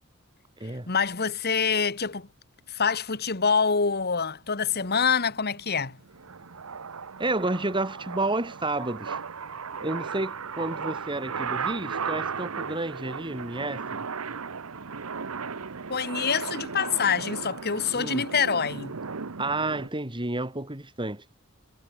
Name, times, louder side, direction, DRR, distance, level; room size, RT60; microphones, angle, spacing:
voice 1, 0.9-2.3 2.7-6.0 15.9-18.9, left 6 dB, 50° left, 1.9 m, -26 dB
sound 1, 4.6-19.9, right 5 dB, 80° right, 1.0 m, -36 dB
voice 2, 7.2-9.2 9.8-14.0 17.9-18.2 19.4-21.2, right 2 dB, 25° right, 3.1 m, -30 dB
head